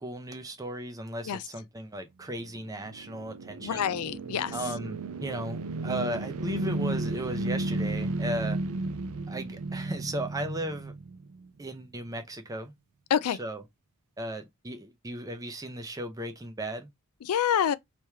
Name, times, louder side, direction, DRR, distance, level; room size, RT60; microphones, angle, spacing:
voice 1, 0.0-3.9 4.5-8.6 9.3-10.9 11.6-12.7 13.3-13.6 14.2-16.9, right 1 dB, 15° right, 0.6 m, -36 dB
sound 1, 2.4-11.6, right 2 dB, 75° right, 0.5 m, -34 dB
voice 2, 3.5-4.5 13.1-13.4 17.2-17.8, left 9 dB, 80° left, 0.4 m, -27 dB
3.1 x 3.0 x 3.3 m
head